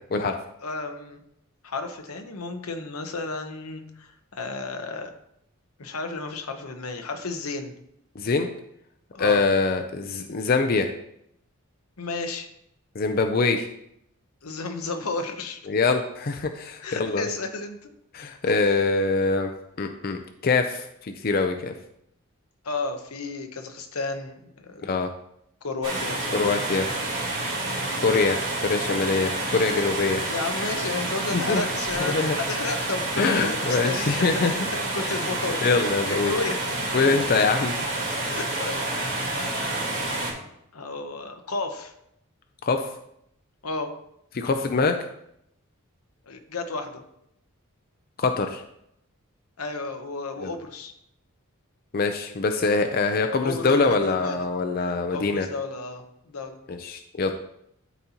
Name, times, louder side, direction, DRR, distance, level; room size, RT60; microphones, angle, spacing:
voice 1, 0.6-1.2 1.6-5.1 5.8-7.7 9.1-9.4 12.0-12.5 14.4-15.6 16.8-17.9 22.6-25.0 25.6-26.4 28.1-28.3 30.2-35.7 36.1-36.6 38.2-39.9 40.7-41.9 43.6-43.9 46.3-47.0 49.6-50.9 53.4-54.4 54.8-56.6, left 3 dB, 90° left, 6 dB, 0.9 m, -33 dB
voice 2, 8.2-8.5 9.2-10.9 12.9-13.7 15.7-17.3 18.1-19.5 19.8-21.7 24.8-25.1 26.3-26.9 28.0-28.4 28.6-30.2 31.3-31.6 32.0-32.4 33.2-34.5 35.6-36.3 36.9-37.8 42.6-42.9 44.3-45.0 48.2-48.6 50.4-50.5 51.9-55.5 56.7-57.3, left 4 dB, 45° left, 5 dB, 0.4 m, -24 dB
sound 1, 25.8-40.3, right 2 dB, 60° right, 3.1 m, -29 dB
12.0 x 4.1 x 2.9 m, 0.76 s
head